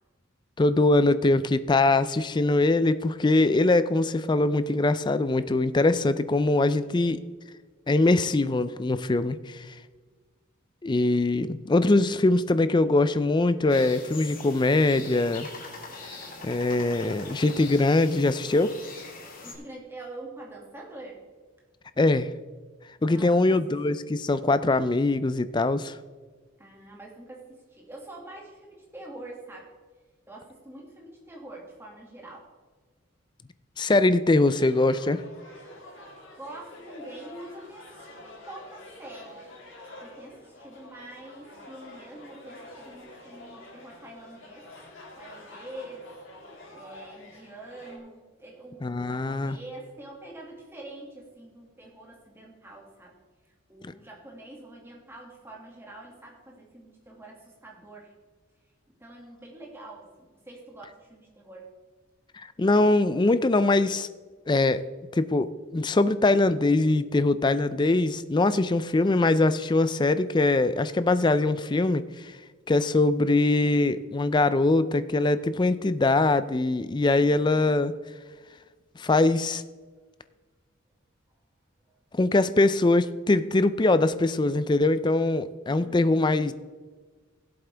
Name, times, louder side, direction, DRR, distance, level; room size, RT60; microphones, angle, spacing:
voice 1, 0.6-7.2 7.9-9.7 10.8-15.5 16.4-18.7 22.0-22.3 23.0-26.0 33.8-35.2 48.8-49.6 62.6-64.1 64.5-64.8 65.1-72.3 72.7-77.9 79.0-79.6 82.1-86.5, left 2 dB, 20° left, 14 dB, 0.4 m, -22 dB
voice 2, 6.7-7.2 19.4-21.2 23.1-23.6 26.6-29.7 30.3-32.5 36.4-39.4 40.0-44.7 45.2-46.1 46.7-53.2 53.7-58.1 59.0-60.1 60.4-61.7 78.4-78.5 81.8-82.0 85.7-86.4, right 1 dB, 10° right, -2 dB, 2.1 m, -45 dB
sound 1, 13.7-19.5, left 3 dB, 45° left, 1.9 m, -42 dB
sound 2, 34.4-48.0, left 1 dB, 70° left, 3.2 m, -47 dB
17.0 x 7.9 x 3.4 m, 1.4 s
head